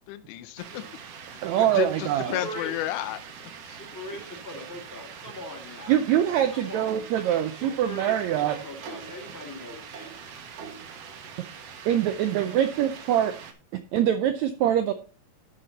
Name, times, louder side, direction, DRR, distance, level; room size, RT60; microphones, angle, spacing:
voice 1, 0.1-0.8 1.3-1.4 1.7-3.2, left 13 dB, 80° left, 10 dB, 1.9 m, -31 dB
sound 1, 0.6-13.5, right 6 dB, 65° right, 1.7 m, -43 dB
voice 2, 1.4-2.4 5.9-8.6 11.8-13.3 13.7-14.9, right 10 dB, 85° right, 9 dB, 1.6 m, -24 dB
voice 3, 2.1-2.7 3.7-6.0 6.5-7.0 7.5-10.1 12.2-12.6, left 1 dB, 10° left, 1 dB, 1.2 m, -40 dB
12.0 x 5.4 x 3.9 m, 0.37 s
omnidirectional pair, 3.9 m